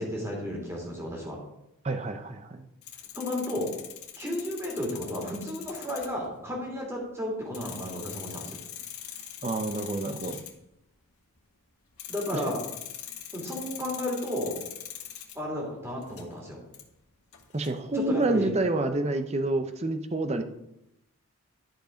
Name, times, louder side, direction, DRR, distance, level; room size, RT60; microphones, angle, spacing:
voice 1, 0.0-1.4 3.1-3.7 4.2-8.6 12.1-12.6 13.3-14.6 15.3-16.6 17.9-18.5, left 1 dB, 10° right, -2 dB, 2.7 m, -33 dB
voice 2, 1.8-2.6 9.4-10.4 12.3-12.4 17.5-20.4, right 2 dB, 30° right, 7 dB, 0.7 m, -28 dB
sound 1, 2.8-6.3 7.0-7.1 7.5-10.5 12.0-15.3 15.9-16.3 16.7-16.8 17.3-18.2, left 10 dB, 80° left, 1.6 m, -42 dB
11.5 x 5.4 x 5.1 m, 0.84 s
head